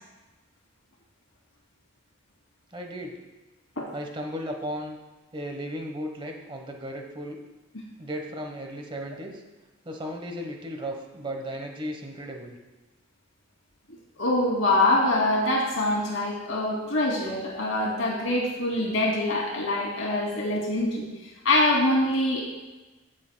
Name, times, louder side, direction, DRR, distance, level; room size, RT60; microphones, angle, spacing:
voice 1, 2.7-3.2 3.9-5.0 5.3-7.4 8.0-9.4 9.8-12.6, equal, 25° right, 3 dB, 1.1 m, -35 dB
voice 2, 14.2-22.4, left 1 dB, 75° left, -2 dB, 2.7 m, -24 dB
17.0 x 7.8 x 2.2 m, 1.1 s
head